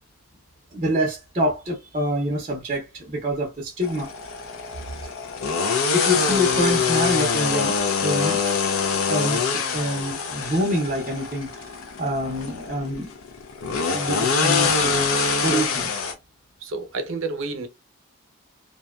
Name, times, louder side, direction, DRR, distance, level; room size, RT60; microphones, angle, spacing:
voice 1, 0.7-4.1 5.0-5.1 5.9-8.4 9.0-11.7 12.0-13.1 13.9-15.1 15.4-16.0, equal, 30° right, 0.6 m, -26 dB
sound 1, 3.8-16.1, left 5 dB, 85° left, 0.5 m, -24 dB
voice 2, 16.6-17.7, right 3 dB, 75° right, 0.6 m, -29 dB
2.6 x 2.2 x 2.2 m
head